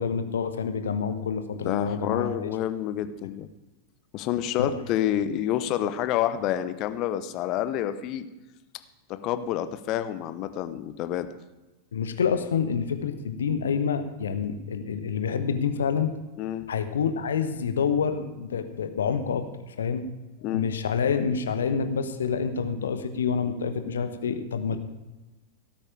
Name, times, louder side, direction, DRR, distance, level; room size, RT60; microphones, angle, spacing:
voice 1, 0.0-2.5 4.6-4.8 11.9-16.1 16.7-20.0 20.5-24.8, left 6 dB, 65° left, 9 dB, 1.1 m, -27 dB
voice 2, 1.6-3.5 4.1-8.3 9.1-11.3 16.4-16.7 20.4-20.7 24.7-24.8, left 11 dB, 40° left, 12 dB, 0.8 m, -28 dB
17.5 x 8.9 x 5.0 m, 1.1 s
figure-of-eight pair, 90°, 0 cm